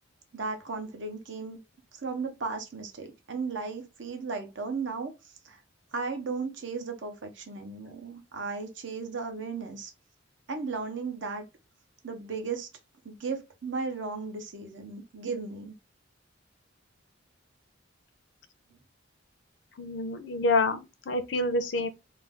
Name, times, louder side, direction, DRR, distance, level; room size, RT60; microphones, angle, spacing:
voice 1, 0.3-1.6 2.0-5.1 5.4-5.6 5.9-9.9 10.5-11.5 12.0-12.7 13.0-15.7, right 4 dB, 65° right, 0.6 m, -35 dB
voice 2, 19.8-21.9, left 2 dB, 60° left, 0.4 m, -27 dB
2.4 x 2.2 x 3.3 m
head